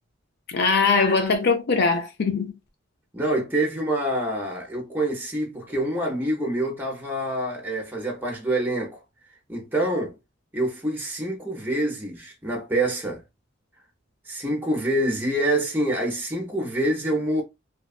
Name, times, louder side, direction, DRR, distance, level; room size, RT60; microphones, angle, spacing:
voice 1, 0.5-2.5, left 4 dB, 60° left, 0.5 m, -21 dB
voice 2, 3.1-9.0 9.5-10.1 10.5-13.2 14.3-17.4, right 1 dB, 10° right, 0.6 m, -26 dB
2.7 x 2.2 x 2.3 m
head